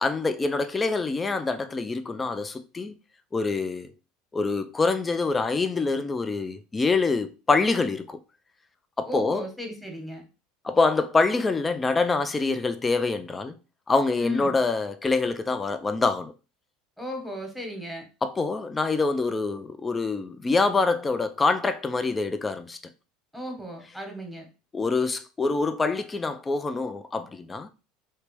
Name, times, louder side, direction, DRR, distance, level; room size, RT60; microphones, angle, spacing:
voice 1, 0.0-2.9 3.3-3.9 4.3-8.2 9.0-9.4 10.6-13.6 13.9-16.3 18.2-22.8 24.7-27.7, left 3 dB, 20° left, 0.5 m, -25 dB
voice 2, 9.0-10.2 14.2-14.6 17.0-18.1 23.3-24.5, equal, ahead, 1.2 m, -36 dB
3.3 x 2.9 x 3.1 m
supercardioid pair, 100°, 0 cm